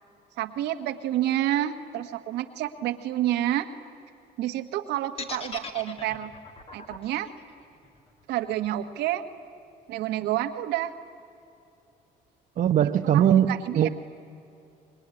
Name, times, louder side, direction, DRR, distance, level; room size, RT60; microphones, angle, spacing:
voice 1, 0.4-3.7 4.4-6.3 6.7-7.3 8.3-9.2 9.9-10.9 13.1-13.9, right 13 dB, 85° right, 7 dB, 1.5 m, -29 dB
sound 1, 5.2-9.2, left 4 dB, 35° left, 2.4 m, -40 dB
voice 2, 12.6-13.9, right 10 dB, 50° right, 6 dB, 0.9 m, -21 dB
27.0 x 22.0 x 9.9 m, 2.6 s
cardioid pair, 110°, 17 cm